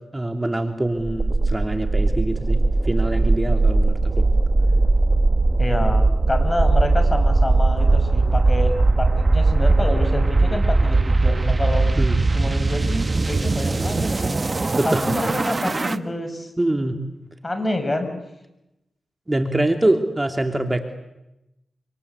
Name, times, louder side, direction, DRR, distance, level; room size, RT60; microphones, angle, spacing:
voice 1, 0.1-4.3 12.0-12.2 14.8-15.2 16.6-17.0 19.3-20.9, right 1 dB, 20° right, 5 dB, 2.8 m, -24 dB
sound 1, 1.0-16.0, right 3 dB, 40° right, 1.3 m, -19 dB
voice 2, 5.6-11.9 12.3-14.4 14.8-16.5 17.4-18.1, left 1 dB, 30° left, 8 dB, 6.5 m, -27 dB
27.0 x 26.0 x 8.4 m, 0.91 s
cardioid pair, 50°, 0 cm